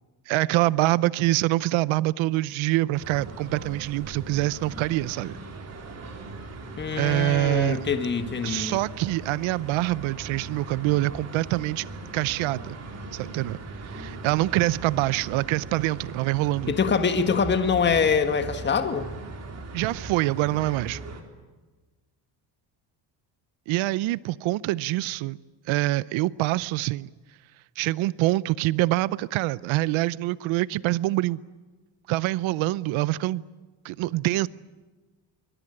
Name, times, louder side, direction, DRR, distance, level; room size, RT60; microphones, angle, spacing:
voice 1, 0.3-5.4 7.0-7.8 8.4-11.9 12.1-12.8 13.1-16.7 19.7-21.0 23.7-25.4 25.7-27.1 27.8-31.4 32.1-33.4 33.8-34.5, right 17 dB, 80° right, 0.8 m, -25 dB
sound 1, 2.9-21.2, right 3 dB, 35° right, 3.7 m, -39 dB
voice 2, 6.8-8.8 16.7-19.1, left 6 dB, 25° left, 1.6 m, -24 dB
24.5 x 22.0 x 9.9 m
cardioid pair, 160°, 46 cm